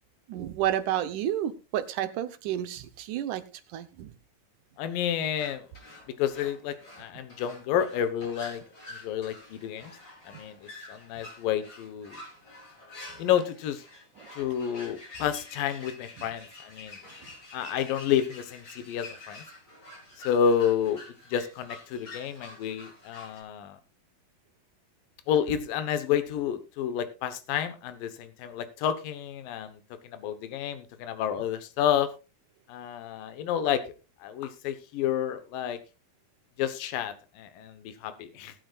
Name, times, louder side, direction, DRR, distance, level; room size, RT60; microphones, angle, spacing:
voice 1, 0.3-3.4 3.7-4.1 10.3-10.4 14.2-14.3 16.2-16.3, right 11 dB, 70° right, 10 dB, 2.2 m, -31 dB
voice 2, 4.8-5.7 6.1-8.6 8.9-10.0 10.2-12.2 13.2-13.8 14.4-17.0 17.5-19.4 20.2-21.0 21.3-23.8 25.3-32.1 32.7-33.8 34.2-35.8 36.6-38.5, left 9 dB, 75° left, 11 dB, 2.7 m, -30 dB
sound 1, 5.4-23.4, left 2 dB, 25° left, 4.7 m, -48 dB
20.0 x 8.7 x 2.4 m, 0.30 s
omnidirectional pair, 4.1 m